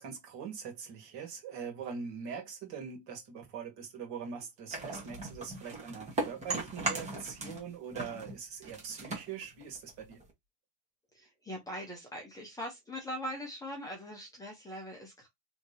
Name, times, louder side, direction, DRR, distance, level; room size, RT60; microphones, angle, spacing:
voice 1, 0.0-10.2, right 6 dB, 50° right, 1.8 m, -42 dB
sound 1, 4.7-7.7 7.9-10.3, right 2 dB, 15° right, 1.2 m, -38 dB
voice 2, 11.1-15.3, equal, 10° left, 0.7 m, -41 dB
3.6 x 2.9 x 2.8 m
supercardioid pair, 160°, 43 cm